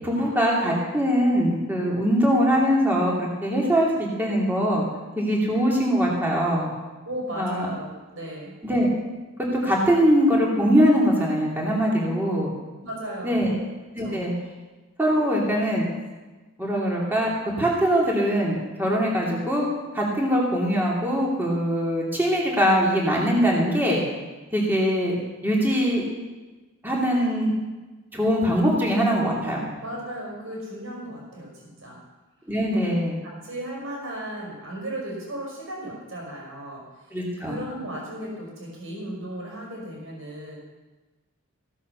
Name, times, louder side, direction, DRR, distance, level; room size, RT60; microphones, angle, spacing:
voice 1, 0.0-3.9 4.2-4.8 5.2-6.7 7.3-7.7 8.6-8.9 9.4-12.5 13.2-13.5 13.9-14.3 15.0-15.8 16.6-17.3 17.6-19.7 19.9-24.0 24.5-25.2 25.4-26.0 26.8-27.5 28.1-29.6 32.5-33.2 37.1-37.6, equal, 10° right, -4 dB, 2.8 m, -22 dB
voice 2, 7.0-8.5 12.8-13.5 14.0-14.2 29.8-32.0 32.7-32.8 33.4-36.8 37.4-40.6, right 1 dB, 65° right, -2 dB, 5.0 m, -35 dB
15.5 x 8.3 x 6.9 m, 1.2 s
head